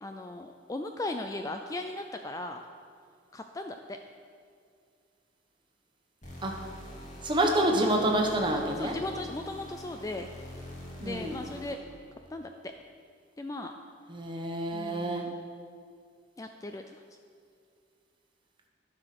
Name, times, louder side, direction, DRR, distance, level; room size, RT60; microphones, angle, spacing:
voice 1, 0.0-2.6 3.3-4.0 8.8-10.3 11.0-11.8 12.3-12.7 13.4-13.7 14.7-15.4 16.4-17.0, left 2 dB, 20° left, 5 dB, 0.3 m, -37 dB
sound 1, 6.2-12.0, left 1 dB, 40° left, 2.0 m, -45 dB
voice 2, 7.2-9.0 11.0-11.4 14.1-15.3, right 1 dB, 25° right, 1 dB, 1.1 m, -27 dB
13.5 x 5.0 x 5.9 m, 2.2 s
head